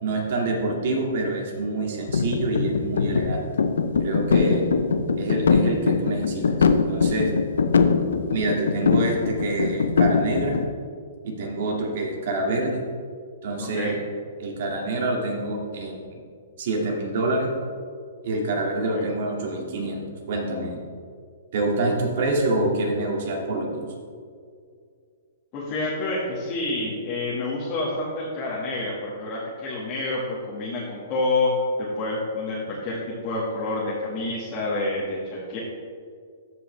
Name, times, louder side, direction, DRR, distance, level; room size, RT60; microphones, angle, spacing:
voice 1, 0.0-3.5 4.0-4.7 5.2-7.3 8.3-10.6 11.2-12.8 13.4-14.0 14.4-16.2 16.6-17.5 18.2-20.8 21.5-23.8, right 2 dB, 55° right, 0 dB, 2.1 m, -26 dB
sound 1, 2.1-10.7, left 5 dB, 90° left, 0.6 m, -22 dB
voice 2, 13.6-13.9 19.0-19.1 25.5-30.2 30.5-35.6, left 2 dB, 35° left, -7 dB, 1.7 m, -28 dB
13.5 x 5.4 x 3.3 m, 2.1 s
hypercardioid pair, 145°, 0 cm